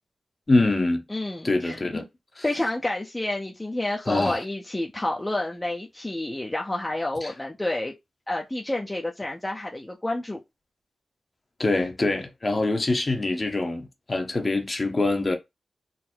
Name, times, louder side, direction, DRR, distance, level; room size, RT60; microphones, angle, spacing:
voice 1, 0.5-1.0 1.4-2.1 2.4-2.5 4.1-4.4 7.2-7.3 11.6-15.4, left 2 dB, 35° left, 1.0 m, -24 dB
voice 2, 1.1-1.8 2.4-7.9 8.3-10.4, left 1 dB, 20° left, 0.7 m, -29 dB
4.0 x 2.0 x 4.3 m
cardioid pair, 65°, 0 cm